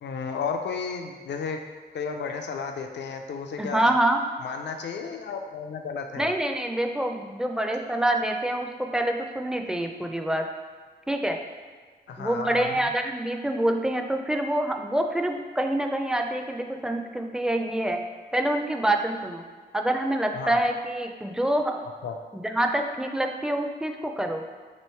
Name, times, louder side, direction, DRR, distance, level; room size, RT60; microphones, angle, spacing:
voice 1, 0.0-1.6 1.9-3.9 4.4-6.3 12.1-12.8 20.3-20.6 22.0-22.1, left 5 dB, 85° left, 4 dB, 0.4 m, -33 dB
voice 2, 3.6-4.2 6.2-10.5 11.1-11.4 12.2-18.0 18.3-19.4 19.7-21.8 22.3-24.4, right 1 dB, 5° right, 4 dB, 0.4 m, -26 dB
3.1 x 2.9 x 4.4 m, 1.5 s
cardioid pair, 65°, 18 cm